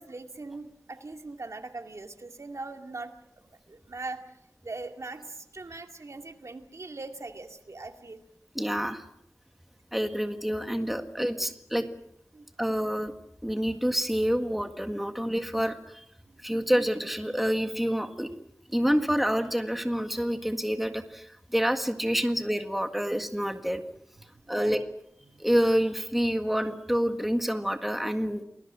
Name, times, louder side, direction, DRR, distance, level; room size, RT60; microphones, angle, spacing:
voice 1, 0.0-3.1 3.4-8.2 12.3-12.5 16.3-16.7 24.3-24.8 25.3-25.4, right 3 dB, 65° right, 5 dB, 2.2 m, -41 dB
voice 2, 8.6-9.0 9.9-11.9 12.6-13.1 13.4-16.0 16.4-18.3 18.7-23.8 24.5-24.8 25.4-28.4, equal, 5° right, 6 dB, 1.7 m, -27 dB
29.5 x 20.5 x 6.2 m, 0.77 s
wide cardioid pair, 75°, 5 cm